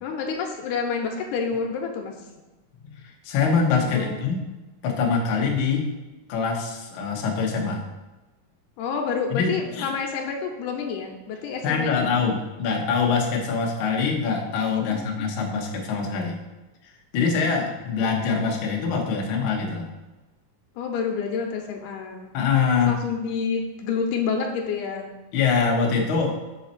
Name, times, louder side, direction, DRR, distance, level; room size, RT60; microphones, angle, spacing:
voice 1, 0.0-2.1 3.8-4.2 8.8-12.2 14.8-15.3 20.8-22.3 22.9-25.1, left 5 dB, 85° left, 2 dB, 2.3 m, -28 dB
voice 2, 2.8-4.4 4.8-5.9 6.3-7.8 9.3-9.9 11.6-16.4 16.8-19.9 22.3-22.9 25.3-26.3, left 5 dB, 65° left, 0 dB, 1.2 m, -24 dB
5.6 x 5.2 x 4.1 m, 1.1 s
omnidirectional pair, 3.7 m